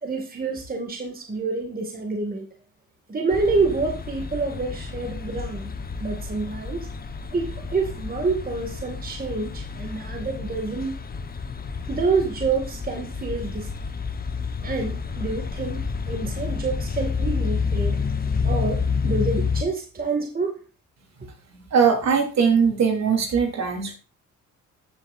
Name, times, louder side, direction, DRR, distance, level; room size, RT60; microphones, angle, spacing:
voice 1, 0.0-2.5 3.1-5.7 6.0-6.9 7.3-10.9 11.9-13.7 14.6-18.0 18.4-20.6, right 4 dB, 30° right, 2 dB, 2.2 m, -27 dB
sound 1, 3.3-19.6, left 5 dB, 30° left, 1.2 m, -29 dB
voice 2, 21.7-23.9, right 6 dB, 60° right, 2 dB, 3.6 m, -20 dB
14.0 x 7.7 x 2.6 m, 0.34 s
cardioid pair, 90°, 30 cm